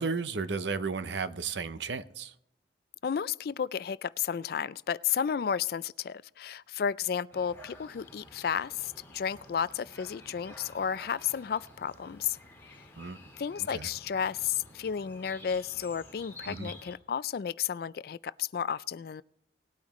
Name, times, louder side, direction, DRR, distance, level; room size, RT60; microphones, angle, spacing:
voice 1, 0.0-2.3 13.0-13.2 13.7-13.9 16.5-16.7, right 4 dB, 75° right, 0.7 m, -33 dB
voice 2, 3.0-12.4 12.8-12.9 13.4-19.2, left 7 dB, 55° left, 0.3 m, -32 dB
sound 1, 7.3-17.0, left 1 dB, 15° left, 2.1 m, -51 dB
19.5 x 8.6 x 3.1 m
head